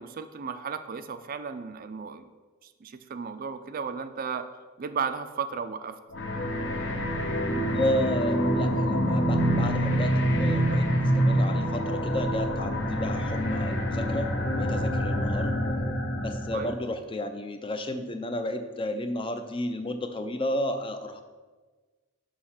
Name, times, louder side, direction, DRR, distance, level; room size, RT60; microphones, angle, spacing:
voice 1, 0.0-2.3 2.6-4.5 4.8-6.0 16.5-16.8, right 6 dB, 40° right, 10 dB, 0.4 m, -34 dB
sound 1, 6.1-16.8, equal, 55° left, 0.9 m, -26 dB
voice 2, 7.7-15.5 16.2-21.2, left 1 dB, 25° left, 8 dB, 0.5 m, -32 dB
6.4 x 5.7 x 5.7 m, 1.3 s
head